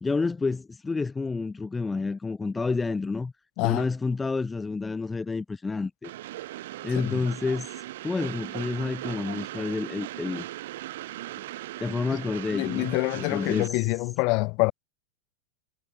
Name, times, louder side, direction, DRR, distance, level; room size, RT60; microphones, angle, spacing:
voice 1, 0.0-3.3 3.6-6.1 6.8-7.7 8.0-10.4 11.8-13.9, left 4 dB, 10° left, 0.8 m, -29 dB
Train, 6.0-13.7, right 15 dB, 75° right, 5.4 m, -38 dB
voice 2, 12.5-14.7, left 29 dB, 50° left, 2.5 m, -26 dB
supercardioid pair, 135°, 0 cm